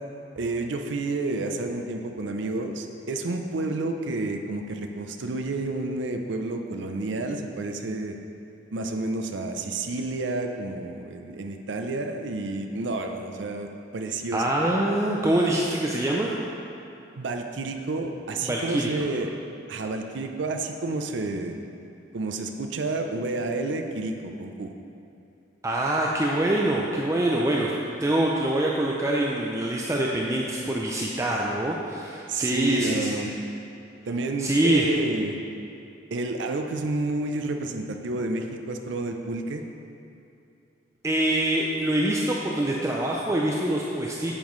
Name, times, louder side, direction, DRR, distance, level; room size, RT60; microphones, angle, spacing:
voice 1, 0.3-8.2 8.7-14.4 17.2-19.3 19.7-21.6 22.1-24.7 32.3-33.3 34.1-35.4 36.1-39.7, right 2 dB, 75° right, 5 dB, 0.5 m, -30 dB
voice 2, 14.3-16.4 18.4-19.1 25.6-27.7 28.0-33.2 34.4-34.9 41.0-44.3, right 1 dB, 15° right, -3 dB, 0.4 m, -25 dB
8.6 x 7.3 x 3.1 m, 2.7 s
head